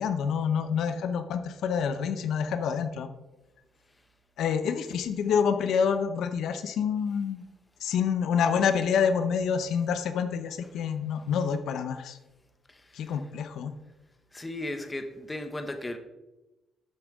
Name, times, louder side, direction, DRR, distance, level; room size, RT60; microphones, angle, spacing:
voice 1, 0.0-3.1 4.4-7.4 7.8-12.2 12.9-13.7, left 7 dB, 75° left, 9 dB, 0.8 m, -27 dB
voice 2, 14.3-16.0, left 1 dB, 15° left, 7 dB, 0.9 m, -35 dB
12.0 x 8.0 x 3.7 m, 1.0 s
cardioid pair, 135°, 0 cm